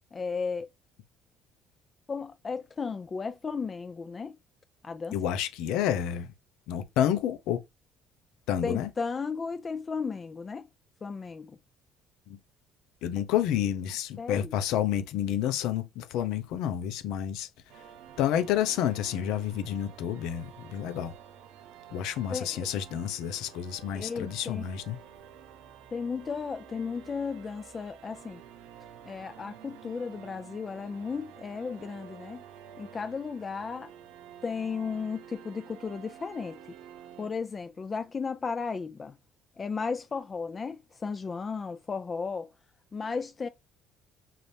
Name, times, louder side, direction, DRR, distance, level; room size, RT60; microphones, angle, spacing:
voice 1, 0.1-0.7 2.1-4.4 4.8-5.3 8.6-10.7 11.0-11.6 14.2-14.6 22.3-22.7 23.9-24.6 25.9-28.4 29.0-32.4 32.8-33.9 34.4-36.8 37.2-39.2 39.6-42.5 42.9-43.5, left 5 dB, 25° left, 0.3 m, -34 dB
voice 2, 5.1-6.3 6.7-7.6 8.5-8.9 12.3-12.4 13.0-17.5 17.7-17.8 18.2-21.1 21.9-25.0, left 10 dB, 80° left, 0.8 m, -29 dB
sound 1, 17.7-37.3, right 9 dB, 90° right, 0.8 m, -50 dB
5.8 x 2.7 x 3.3 m
cardioid pair, 120°, 0 cm